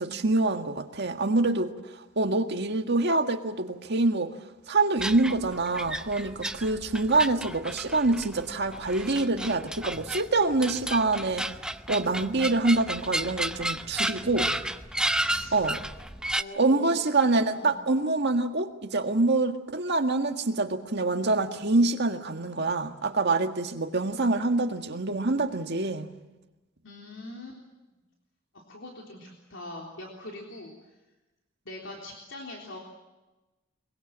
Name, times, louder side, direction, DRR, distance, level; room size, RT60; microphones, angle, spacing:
voice 1, 0.0-1.7 2.2-4.3 4.7-11.5 11.9-14.5 15.5-15.8 16.6-26.1, right 2 dB, 55° right, 5 dB, 1.8 m, -25 dB
sound 1, 5.0-16.4, right 1 dB, 5° right, 0.7 m, -33 dB
voice 2, 15.1-15.6 16.3-17.1 17.5-17.8 26.8-27.6 28.5-30.7 31.7-32.8, left 1 dB, 65° left, -1 dB, 3.7 m, -42 dB
23.5 x 23.0 x 7.6 m, 1.1 s
head